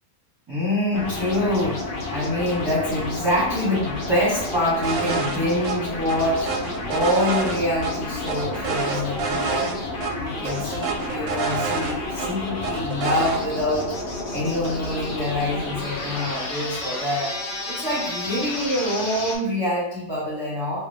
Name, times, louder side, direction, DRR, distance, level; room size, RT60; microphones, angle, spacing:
voice 1, 0.5-6.5 6.9-9.7 10.1-13.9 14.3-20.8, left 1 dB, 20° right, -8 dB, 1.0 m, -25 dB
sound 1, 0.9-19.4, left 2 dB, 50° left, 0.7 m, -31 dB
sound 2, 4.8-5.4 5.6-5.7 6.1-7.9 8.3-9.7 10.0-10.1 10.4-12.3 12.6-13.4, right 5 dB, 70° right, 0.9 m, -28 dB
4.0 x 2.4 x 3.4 m, 0.84 s
omnidirectional pair, 1.5 m